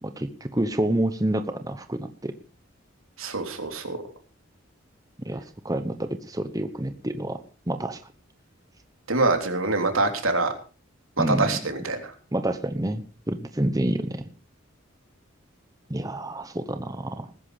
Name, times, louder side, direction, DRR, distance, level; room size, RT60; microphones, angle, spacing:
voice 1, 0.0-2.3 5.2-7.4 7.7-8.0 11.2-11.6 12.3-14.3 15.9-17.3, right 1 dB, 15° right, 9 dB, 1.0 m, -28 dB
voice 2, 3.2-4.0 9.1-10.5 11.2-12.1, right 3 dB, 80° right, 5 dB, 3.4 m, -25 dB
19.5 x 10.5 x 5.0 m, 0.37 s
head